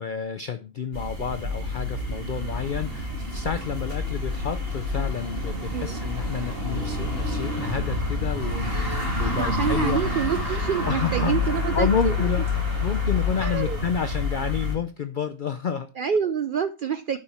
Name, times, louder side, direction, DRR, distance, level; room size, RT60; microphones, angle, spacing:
voice 1, 0.0-10.1 10.8-11.4 11.7-15.9, left 7 dB, 85° left, 0.4 m, -30 dB
sound 1, 0.9-14.8, left 2 dB, 40° right, 2.0 m, -28 dB
voice 2, 5.7-6.0 9.2-12.1 13.4-13.8 16.0-17.2, right 7 dB, 75° right, 0.4 m, -27 dB
9.7 x 5.1 x 4.3 m
omnidirectional pair, 1.5 m